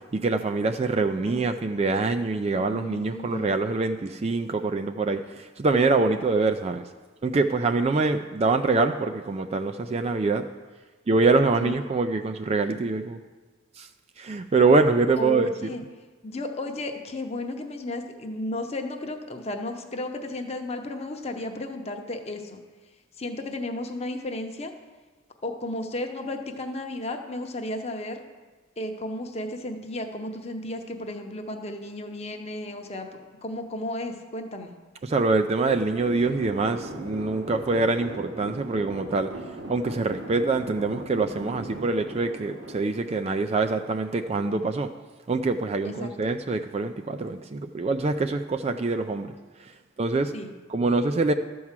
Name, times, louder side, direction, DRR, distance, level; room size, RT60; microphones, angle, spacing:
voice 1, 0.1-6.8 7.2-10.4 11.1-13.2 13.8-13.9 14.2-15.5 35.0-39.3 39.7-44.9 45.3-49.3 50.0-50.3 50.7-51.3, right 3 dB, 30° right, 7 dB, 0.3 m, -24 dB
voice 2, 2.5-3.5 11.6-11.8 15.2-15.8 16.2-22.6 23.2-24.7 25.4-28.2 28.8-33.1 33.4-34.7 45.8-46.3 50.3-50.5, left 1 dB, 30° left, 4 dB, 0.8 m, -34 dB
sound 1, 35.7-43.9, right 1 dB, 65° right, 1.2 m, -39 dB
12.5 x 4.7 x 7.3 m, 1.3 s
head